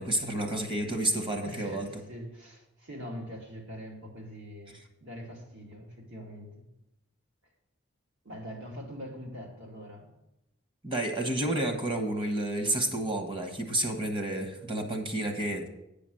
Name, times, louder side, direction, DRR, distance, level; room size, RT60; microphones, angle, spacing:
voice 1, 0.0-1.9 10.8-15.7, right 1 dB, 25° right, 5 dB, 1.2 m, -30 dB
voice 2, 1.4-6.6 8.2-10.1, equal, 65° right, 0 dB, 2.4 m, -43 dB
9.0 x 5.1 x 7.6 m, 0.88 s
head